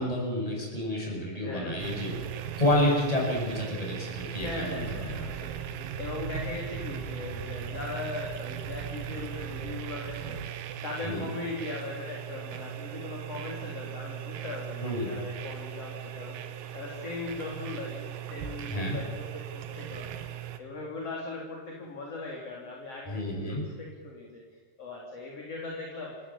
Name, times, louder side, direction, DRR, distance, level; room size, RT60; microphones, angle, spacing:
voice 1, 0.0-2.1 2.6-5.3 11.0-11.3 14.8-15.1 18.7-19.0 23.1-23.6, left 1 dB, 5° left, -2 dB, 7.2 m, -29 dB
voice 2, 1.3-1.9 4.3-5.6 6.0-10.4 10.8-16.4 16.7-20.2 20.6-24.4 24.8-26.2, left 3 dB, 35° left, -2 dB, 3.8 m, -39 dB
sound 1, 1.8-20.6, right 9 dB, 80° right, 4.0 m, -38 dB
29.5 x 14.5 x 8.9 m, 1.5 s
omnidirectional pair, 6.0 m